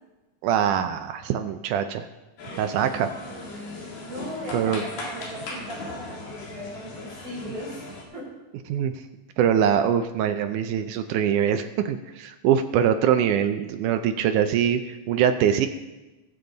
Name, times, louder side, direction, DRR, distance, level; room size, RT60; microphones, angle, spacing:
voice 1, 0.4-2.1 2.6-3.1 4.5-4.8 8.7-8.9 9.4-15.7, right 9 dB, 80° right, 8 dB, 1.8 m, -23 dB
sound 1, 2.4-8.0, left 2 dB, 70° left, 3.8 m, -38 dB
voice 2, 3.2-7.8 8.1-8.4, equal, 45° right, -5 dB, 5.8 m, -38 dB
19.5 x 7.0 x 3.9 m, 1.1 s
omnidirectional pair, 4.1 m